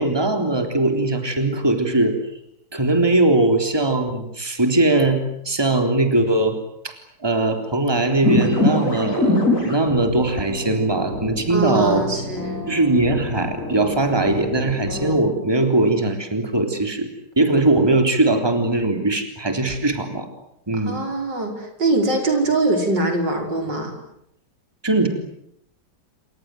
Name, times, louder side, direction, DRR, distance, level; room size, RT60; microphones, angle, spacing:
voice 1, 0.0-2.1 2.7-6.6 6.8-6.9 7.2-12.1 12.7-17.1 17.4-20.3 20.7-21.0 24.8-25.1, right 2 dB, 15° right, 5 dB, 3.7 m, -20 dB
sound 1, 8.2-15.2, left 1 dB, 45° left, 7.3 m, -25 dB
voice 2, 11.5-12.6 20.7-23.9, right 2 dB, 85° right, 4 dB, 6.2 m, -23 dB
28.5 x 26.5 x 7.9 m, 0.74 s
omnidirectional pair, 1.9 m